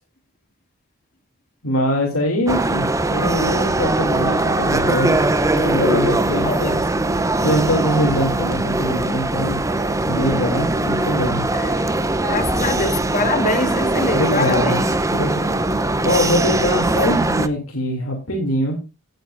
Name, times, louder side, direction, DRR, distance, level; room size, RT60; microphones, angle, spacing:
voice 1, 1.6-6.8 7.4-9.6 10.1-11.4 14.1-14.8 15.1-15.6 16.0-18.8, left 1 dB, 80° left, 2.7 m, -23 dB
sound 1, 2.5-17.5, right 2 dB, 15° right, 0.6 m, -21 dB
voice 2, 6.0-6.9 11.5-15.0, left 3 dB, 40° left, 1.7 m, -25 dB
17.0 x 8.0 x 2.6 m
head